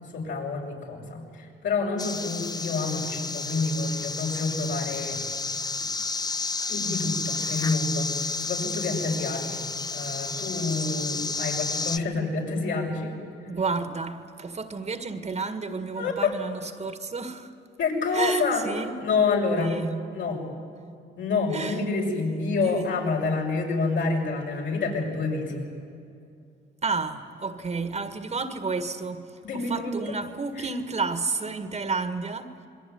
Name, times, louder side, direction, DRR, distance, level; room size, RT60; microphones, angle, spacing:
voice 1, 0.1-5.2 5.7-6.0 6.7-13.2 16.0-16.3 17.8-18.6 19.0-19.8 20.1-20.4 21.2-25.7 29.4-29.9, left 3 dB, 70° left, 6.7 m, -28 dB
sound 1, 2.0-12.0, left 3 dB, 20° left, 0.7 m, -31 dB
voice 2, 13.5-17.5 18.1-18.9 19.6-19.9 21.5-21.8 22.6-22.8 26.8-32.7, right 4 dB, 35° right, 1.8 m, -31 dB
26.5 x 22.0 x 9.6 m
cardioid pair, 90°, 20 cm